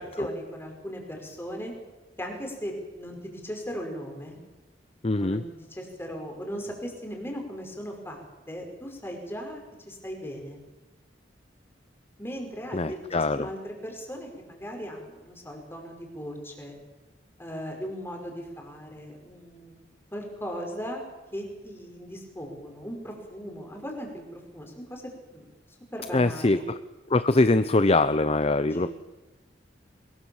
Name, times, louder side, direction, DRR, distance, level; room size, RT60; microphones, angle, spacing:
voice 1, 0.0-1.7 2.2-4.4 5.2-9.6 9.9-10.6 12.2-16.7 17.4-19.8 20.1-25.5 25.9-26.6 28.6-28.9, equal, 15° left, 2 dB, 5.5 m, -38 dB
voice 2, 5.0-5.4 12.7-13.5 26.1-26.6 27.1-28.9, left 2 dB, 35° left, 12 dB, 0.7 m, -23 dB
23.0 x 21.5 x 7.2 m, 1.1 s
head